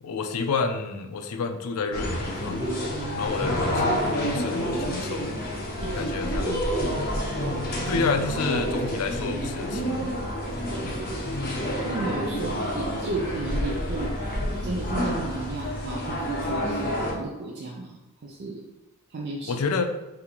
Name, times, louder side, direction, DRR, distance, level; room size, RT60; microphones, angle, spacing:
voice 1, 0.0-2.7 3.1-5.3 5.9-6.6 7.9-10.1 10.8-10.9 19.5-19.8, left 4 dB, 75° left, 6 dB, 0.4 m, -29 dB
sound 1, 1.9-17.1, equal, 40° left, 0.7 m, -28 dB
voice 2, 2.8-3.3 5.8-6.3 10.8-11.3 11.8-14.1 14.6-16.8 17.1-18.6 19.1-19.5, right 2 dB, 50° right, -3 dB, 0.4 m, -34 dB
3.8 x 2.6 x 2.9 m, 1.0 s
head